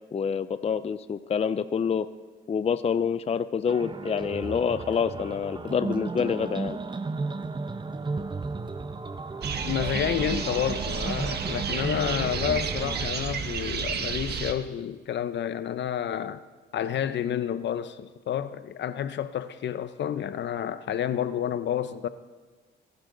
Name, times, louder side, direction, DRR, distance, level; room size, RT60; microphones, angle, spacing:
voice 1, 0.1-2.1 2.5-6.8, left 6 dB, 30° left, 0.5 m, -27 dB
sound 1, 3.7-13.1, right 3 dB, 25° right, 0.8 m, -34 dB
sound 2, 9.4-14.5, right 6 dB, 55° right, 1.5 m, -31 dB
voice 2, 9.6-16.4 16.7-22.1, left 9 dB, 65° left, 0.8 m, -30 dB
26.0 x 11.5 x 3.9 m
cardioid pair, 90°, 20 cm